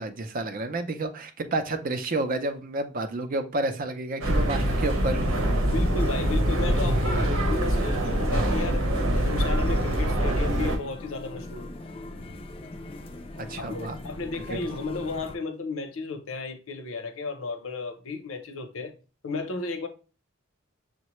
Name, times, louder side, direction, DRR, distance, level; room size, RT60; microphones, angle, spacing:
voice 1, 0.0-5.3 13.4-14.0 14.5-14.6, right 2 dB, 45° right, 0.5 m, -30 dB
sound 1, 4.2-10.8, right 1 dB, 80° right, 1.0 m, -24 dB
sound 2, 4.3-15.4, left 2 dB, 25° left, 0.4 m, -40 dB
voice 2, 5.7-11.7 13.6-18.9 19.2-19.9, left 3 dB, 80° left, 0.7 m, -33 dB
6.4 x 2.2 x 3.0 m
head